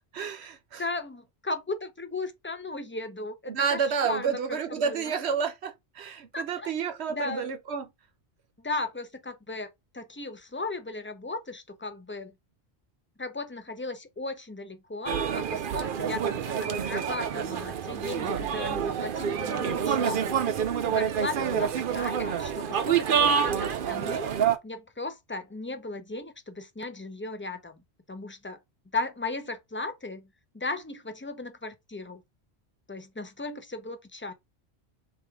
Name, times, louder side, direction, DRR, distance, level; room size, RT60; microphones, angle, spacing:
voice 1, 0.1-0.8 3.5-7.9, right 6 dB, 80° right, 1.1 m, -30 dB
voice 2, 0.8-5.2 6.3-6.7 7.1-7.5 8.6-12.3 13.2-20.5 20.9-24.3 24.6-27.8 28.1-28.6 28.9-30.3 30.5-32.2 32.9-34.3, left 3 dB, 15° left, 0.4 m, -36 dB
sound 1, 15.1-24.6, right 8 dB, 60° right, 0.7 m, -27 dB
3.5 x 3.1 x 4.5 m
omnidirectional pair, 1.1 m